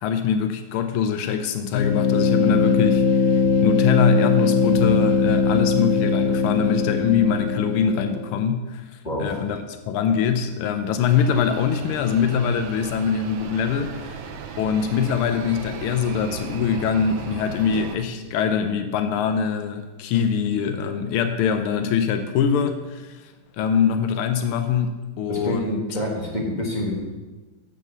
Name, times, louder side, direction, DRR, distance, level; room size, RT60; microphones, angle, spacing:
voice 1, 0.0-14.2 14.6-25.8, left 7 dB, 85° left, 7 dB, 1.5 m, -23 dB
sound 1, 1.7-8.4, left 5 dB, 65° left, 0.9 m, -20 dB
voice 2, 9.0-9.4 25.3-26.9, left 1 dB, 25° left, -2 dB, 1.5 m, -27 dB
sound 2, 11.0-18.0, right 6 dB, 70° right, 1.4 m, -37 dB
7.1 x 6.2 x 6.7 m, 1.2 s
omnidirectional pair, 2.3 m